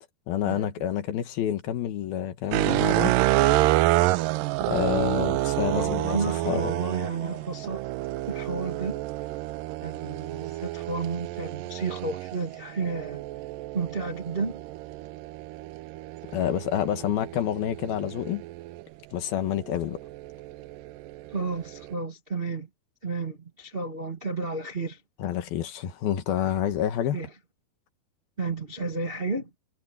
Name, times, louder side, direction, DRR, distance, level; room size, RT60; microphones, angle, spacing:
voice 1, 0.3-3.2 4.7-6.2 6.4-6.9 16.3-18.4 19.1-20.0 25.2-27.2, left 10 dB, 75° left, 3.4 m, -28 dB
sound 1, 2.5-18.8 19.5-21.9, right 18 dB, 80° right, 2.0 m, -29 dB
voice 2, 5.7-7.8 8.3-9.0 9.8-13.2 13.7-14.6 21.3-22.7 23.0-25.0 27.1-27.3 28.4-29.5, right 4 dB, 35° right, 0.9 m, -32 dB
omnidirectional pair, 4.3 m